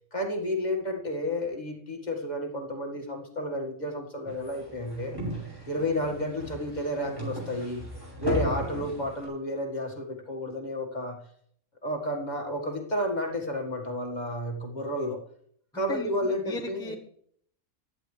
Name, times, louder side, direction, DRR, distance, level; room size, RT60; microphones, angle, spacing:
voice 1, 0.1-5.1 5.7-7.9 8.2-11.2 11.8-15.2 15.7-17.0, left 1 dB, 30° left, 1 dB, 2.1 m, -31 dB
sound 1, 4.2-9.3, equal, 15° right, 5.8 m, -36 dB
voice 2, 15.7-17.0, left 2 dB, 5° left, 2 dB, 1.0 m, -37 dB
16.0 x 11.5 x 3.4 m, 0.65 s
omnidirectional pair, 1.5 m